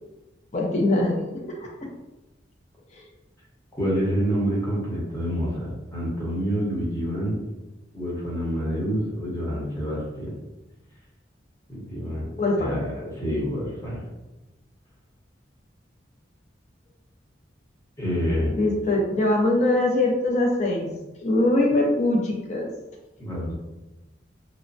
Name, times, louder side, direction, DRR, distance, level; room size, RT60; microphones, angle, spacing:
voice 1, 0.5-1.7 12.4-12.8 18.6-20.9 21.2-22.7, left 2 dB, 40° left, 0 dB, 0.5 m, -22 dB
voice 2, 3.8-7.3 7.9-10.3 11.7-14.1 18.0-18.6 23.2-23.5, equal, 15° left, -6 dB, 0.8 m, -27 dB
3.0 x 2.1 x 2.5 m, 1.0 s
head